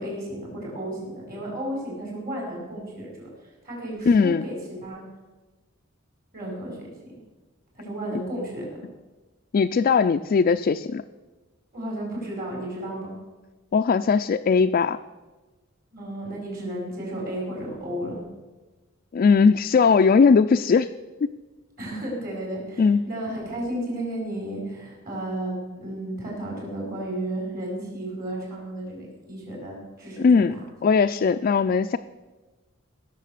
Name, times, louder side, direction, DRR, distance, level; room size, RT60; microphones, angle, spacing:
voice 1, 0.0-3.3 3.6-5.0 6.3-6.8 7.7-8.6 11.7-13.1 15.9-18.2 21.8-25.5 25.8-30.4, right 1 dB, 45° right, -1 dB, 5.1 m, -33 dB
voice 2, 4.1-4.4 9.5-11.0 13.7-15.0 19.1-20.9 22.8-23.0 30.2-30.6 30.8-32.0, left 5 dB, 45° left, 7 dB, 0.3 m, -19 dB
17.5 x 6.8 x 6.6 m, 1.2 s
head